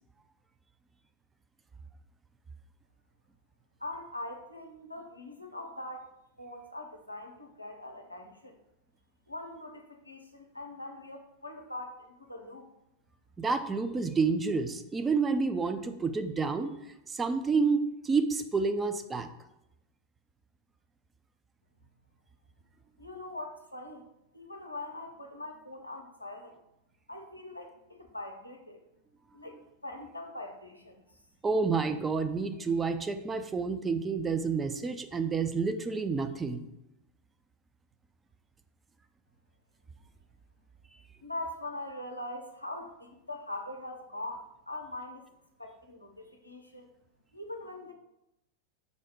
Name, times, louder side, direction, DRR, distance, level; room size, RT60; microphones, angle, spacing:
voice 1, 3.8-6.1 6.4-8.6 9.3-12.7 23.0-24.1 24.3-26.6 27.1-28.8 29.3-31.2 41.2-45.3 45.6-46.9 47.3-47.9, left 1 dB, 85° left, 3 dB, 0.6 m, -42 dB
voice 2, 13.4-16.8 17.1-19.3 31.4-36.6, right 4 dB, 15° right, 9 dB, 0.3 m, -29 dB
5.2 x 2.0 x 4.7 m, 0.88 s
figure-of-eight pair, 90°, 0 cm